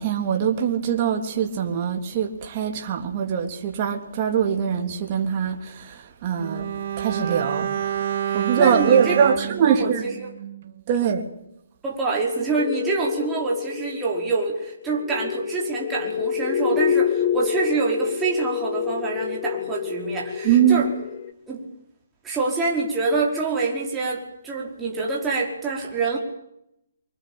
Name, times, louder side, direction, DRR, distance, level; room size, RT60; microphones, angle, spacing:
voice 1, 0.0-6.7 7.0-10.0 10.9-11.2 20.4-20.8, right 8 dB, 30° right, 3.4 m, -23 dB
Bowed string instrument, 6.4-10.8 11.1-11.2, right 9 dB, 50° right, 2.2 m, -28 dB
voice 2, 8.3-9.2 9.6-10.3 11.0-11.1 11.8-20.9 21.5-21.6 22.2-26.2, right 3 dB, 10° right, 5.1 m, -26 dB
sound 1, 12.6-21.3, left 9 dB, 35° left, 1.7 m, -28 dB
25.0 x 20.5 x 9.0 m
hypercardioid pair, 165°, 0 cm